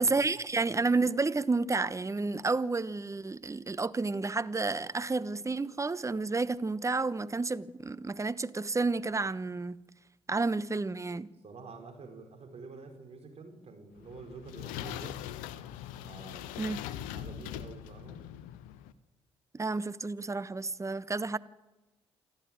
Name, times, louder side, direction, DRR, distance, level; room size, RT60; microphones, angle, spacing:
voice 1, 0.0-9.8 10.3-11.3 16.6-16.8 19.5-21.4, right 3 dB, 20° right, 1.1 m, -30 dB
voice 2, 11.4-15.2 16.0-16.6 17.1-18.2, right 4 dB, 45° right, 4.9 m, -48 dB
sound 1, 14.0-18.9, left 11 dB, 70° left, 1.0 m, -41 dB
27.0 x 13.0 x 9.2 m
figure-of-eight pair, 40°, 14 cm